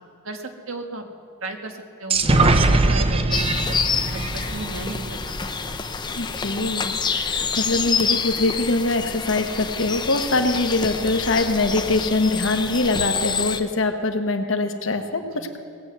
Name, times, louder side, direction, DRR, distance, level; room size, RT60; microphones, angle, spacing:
voice 1, 0.2-1.0 1.4-3.8 4.1-5.4 15.3-15.5, right 2 dB, 90° right, 4 dB, 1.4 m, -35 dB
sound 1, 2.1-5.8, right 2 dB, 30° right, 0.7 m, -21 dB
sound 2, 3.3-13.6, left 5 dB, 20° left, 0.6 m, -27 dB
voice 2, 6.1-15.6, left 2 dB, 65° left, 6 dB, 1.1 m, -23 dB
18.5 x 7.8 x 8.0 m, 2.5 s
head